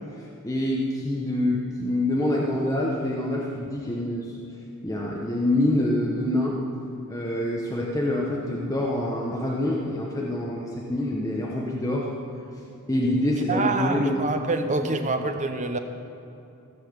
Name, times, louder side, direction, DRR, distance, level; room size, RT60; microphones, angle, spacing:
voice 1, 0.4-4.3 4.8-6.6 7.1-12.1 12.9-14.3 14.8-15.3, left 1 dB, 15° left, -3 dB, 1.0 m, -26 dB
voice 2, 13.5-15.8, right 3 dB, 35° right, 6 dB, 0.8 m, -26 dB
16.0 x 5.7 x 7.3 m, 2.7 s
head